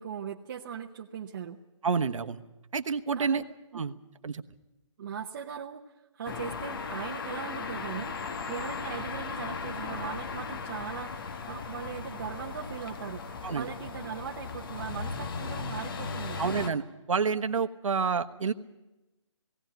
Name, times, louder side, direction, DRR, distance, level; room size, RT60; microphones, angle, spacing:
voice 1, 0.0-1.6 3.1-3.5 3.7-3.8 5.0-5.8 6.1-16.4, right 8 dB, 35° right, 0 dB, 0.9 m, -39 dB
voice 2, 1.8-2.4 2.7-3.4 3.7-4.0 4.2-4.4 13.4-13.7 16.4-18.5, right 5 dB, 80° right, 9 dB, 1.2 m, -29 dB
sound 1, 6.3-16.7, left 4 dB, 45° left, 1.3 m, -37 dB
18.0 x 18.0 x 9.2 m, 1.0 s
hypercardioid pair, 165°, 16 cm